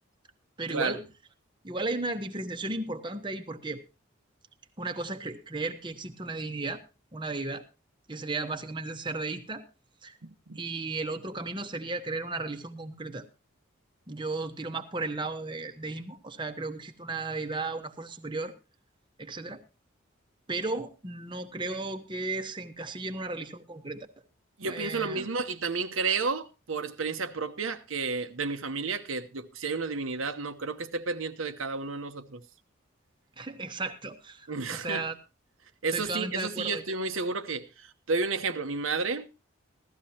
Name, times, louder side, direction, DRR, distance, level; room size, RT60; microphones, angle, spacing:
voice 1, 0.6-1.0 1.6-3.8 4.8-6.8 7.1-7.6 8.1-9.6 10.0-10.2 10.6-13.3 14.1-18.5 19.2-19.6 20.5-24.1 24.6-25.3 33.4-35.2 35.9-36.8, right 3 dB, 25° right, 0.9 m, -35 dB
voice 2, 10.2-10.6 24.6-32.4 34.5-35.0 35.8-39.3, right 4 dB, 80° right, 0.9 m, -31 dB
16.0 x 13.5 x 2.8 m
head